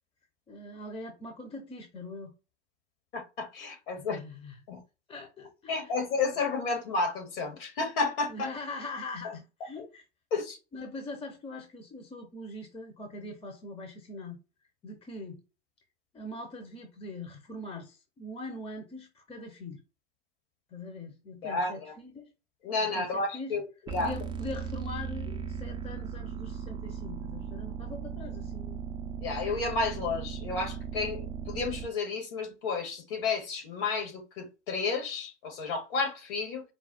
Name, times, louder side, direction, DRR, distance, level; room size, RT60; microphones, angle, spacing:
voice 1, 0.5-2.3 3.9-4.6 5.1-6.4 8.3-10.0 10.7-14.4 14.8-15.4 16.1-19.8 20.7-22.3 22.8-23.6 24.0-28.8, left 2 dB, 15° left, 1.0 m, -42 dB
voice 2, 3.1-4.2 4.7-4.8 5.7-8.5 10.3-10.6 21.4-21.9 22.6-23.6 23.9-24.1 29.2-36.6, left 4 dB, 55° left, 2.0 m, -31 dB
sound 1, 23.9-31.9, right 6 dB, 15° right, 0.5 m, -37 dB
4.7 x 2.3 x 4.2 m
figure-of-eight pair, 95°, 35 cm